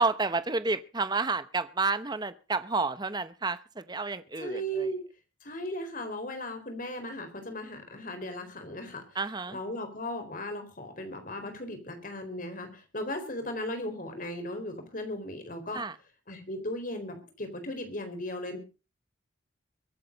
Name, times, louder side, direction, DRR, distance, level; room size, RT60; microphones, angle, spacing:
voice 1, 0.0-4.9 9.1-9.6 15.7-15.9, right 3 dB, 20° right, 13 dB, 0.9 m, -30 dB
voice 2, 4.4-5.0 5.4-9.0 9.5-15.8 16.3-18.6, equal, 45° left, 6 dB, 4.2 m, -36 dB
23.0 x 8.5 x 5.2 m, 0.34 s
head